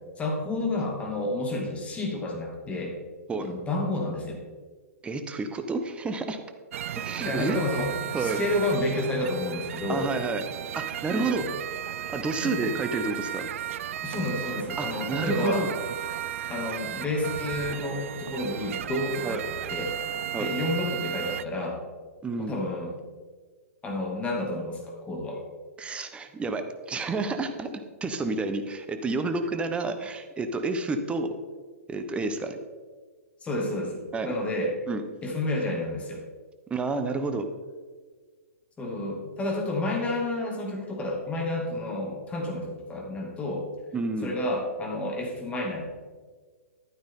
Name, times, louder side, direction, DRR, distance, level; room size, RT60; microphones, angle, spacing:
voice 1, 0.2-2.9 3.4-4.4 7.2-10.1 11.1-11.5 12.4-12.7 14.0-15.7 16.5-19.9 20.3-21.8 22.4-22.9 23.8-25.4 33.4-34.7 35.2-36.2 38.8-43.6 44.2-45.8, left 1 dB, 15° left, -1 dB, 2.4 m, -30 dB
voice 2, 5.0-6.4 6.9-7.6 8.1-8.4 9.9-10.4 10.7-11.4 12.1-13.5 14.8-15.7 19.2-19.4 20.3-20.5 22.2-22.6 25.8-27.7 28.0-31.3 31.9-32.6 34.1-34.3 34.9-35.0 36.7-37.5 43.9-44.3, right 3 dB, 15° right, 7 dB, 0.9 m, -30 dB
sound 1, 6.7-21.5, right 11 dB, 60° right, 0.4 m, -34 dB
11.5 x 9.5 x 3.8 m, 1.5 s
hypercardioid pair, 125°, 8 cm